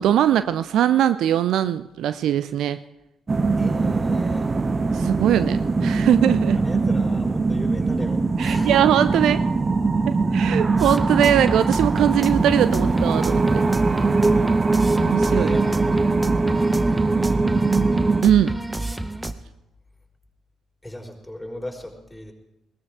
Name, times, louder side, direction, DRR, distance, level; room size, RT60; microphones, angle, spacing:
voice 1, 0.0-2.8 4.9-6.6 8.4-9.4 10.0-13.7 15.0-15.6 18.2-18.6, right 10 dB, 60° right, 14 dB, 0.5 m, -21 dB
sound 1, 3.3-18.2, right 3 dB, 25° right, 0.8 m, -21 dB
voice 2, 3.6-4.5 6.5-8.8 11.2-11.3 15.2-15.7 16.4-17.7 20.8-22.3, left 1 dB, 5° left, 1 dB, 4.0 m, -37 dB
sound 2, 10.8-19.3, right 2 dB, 10° right, 1.1 m, -30 dB
20.5 x 18.0 x 3.6 m, 0.93 s
figure-of-eight pair, 45°, 0 cm